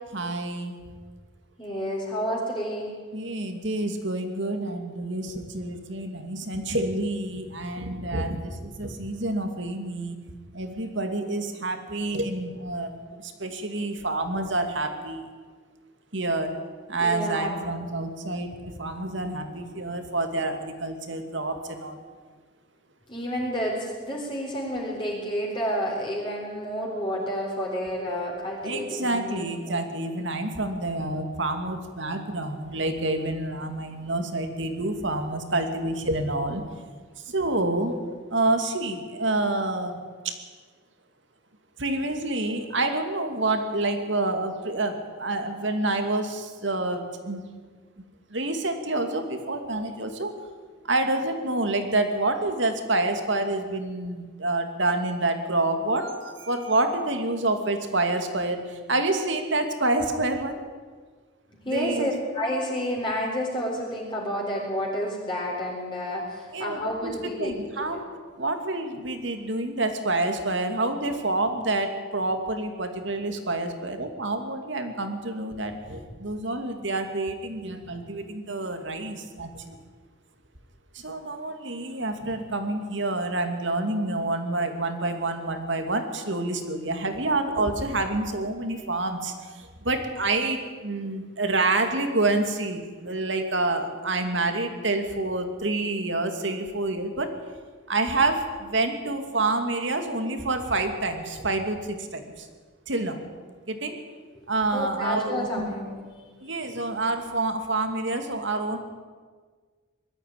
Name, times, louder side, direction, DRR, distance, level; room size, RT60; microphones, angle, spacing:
voice 1, 0.1-0.8 3.1-10.2 10.5-15.2 16.1-16.6 16.9-22.0 28.6-36.6 37.3-38.0 38.3-40.0 40.2-40.4 41.8-47.4 48.3-50.3 50.8-60.6 61.6-62.1 66.5-67.1 67.4-68.1 68.4-79.8 80.9-97.3 97.9-102.5 102.9-103.2 103.7-104.0 104.5-105.7 106.4-108.8, right 2 dB, 65° right, 6 dB, 2.5 m, -28 dB
voice 2, 1.6-2.9 17.0-17.6 23.1-29.8 61.6-67.5 67.8-68.0 104.7-106.0, equal, 25° left, -3 dB, 4.0 m, -30 dB
21.0 x 13.5 x 9.4 m, 1.5 s
head